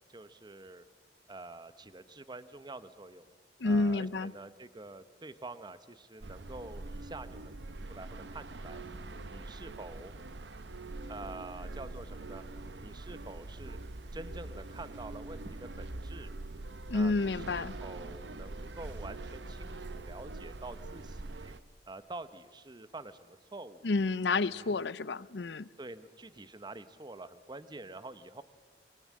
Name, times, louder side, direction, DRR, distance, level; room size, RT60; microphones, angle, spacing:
voice 1, 0.1-0.8 1.3-3.3 3.6-8.8 9.3-10.1 11.1-12.4 12.8-13.8 14.1-16.3 16.9-21.5 21.9-23.9 24.5-24.9 25.8-28.4, right 2 dB, 25° right, 13 dB, 0.9 m, -47 dB
voice 2, 3.6-4.3 16.9-17.7 23.8-25.7, left 3 dB, 80° left, 19 dB, 0.6 m, -29 dB
sound 1, 6.2-21.6, right 2 dB, 85° right, 0.9 m, -43 dB
26.5 x 22.5 x 7.5 m, 1.5 s
head